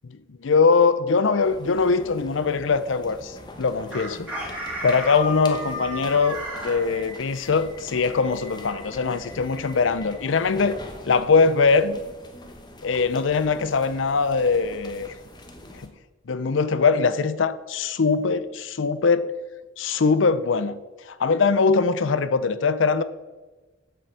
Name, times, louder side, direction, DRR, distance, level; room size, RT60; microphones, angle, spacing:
voice 1, 0.4-4.6 4.8-6.4 6.6-10.8 11.1-12.0 12.8-15.1 15.8-15.9 16.3-19.3 19.8-20.8 21.1-23.0, left 4 dB, 90° left, 0.6 m, -22 dB
sound 1, 1.4-15.9, left 1 dB, 25° left, 1.0 m, -42 dB
Chicken rooster, 3.9-6.8, equal, 5° right, 2.9 m, -32 dB
8.0 x 6.8 x 7.5 m
head